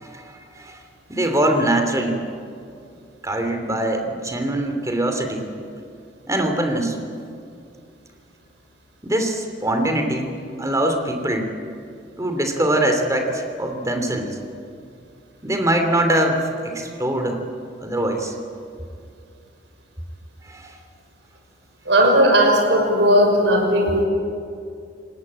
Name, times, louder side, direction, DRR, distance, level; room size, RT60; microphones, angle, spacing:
voice 1, 1.1-2.2 3.2-5.5 6.3-7.0 9.0-11.5 12.2-14.4 15.4-17.4 17.8-18.3 20.5-20.7, right 1 dB, 20° right, 5 dB, 2.9 m, -22 dB
voice 2, 21.9-24.1, equal, 75° right, 3 dB, 5.8 m, -16 dB
28.0 x 18.5 x 8.7 m, 2.4 s
head